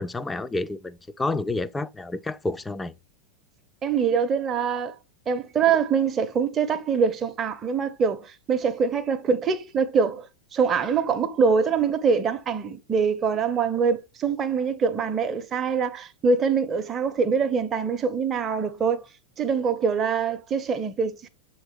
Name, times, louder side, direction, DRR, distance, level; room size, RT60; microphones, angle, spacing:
voice 1, 0.0-2.9, left 2 dB, 10° left, 0.4 m, -29 dB
voice 2, 3.8-4.9 5.3-10.3 10.5-19.0 19.4-21.3, right 6 dB, 25° right, 0.8 m, -24 dB
7.8 x 4.0 x 3.2 m
figure-of-eight pair, 90°, 0 cm